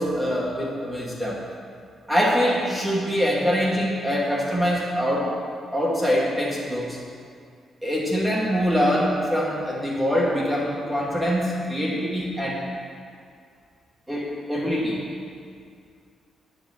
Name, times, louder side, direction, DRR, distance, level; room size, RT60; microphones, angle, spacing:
voice 1, 0.0-1.4 2.1-5.3 5.7-7.0 7.8-12.6 14.1-15.0, equal, 5° right, -5 dB, 1.1 m, -24 dB
8.7 x 5.3 x 7.6 m, 2.2 s
cardioid pair, 155°, 0 cm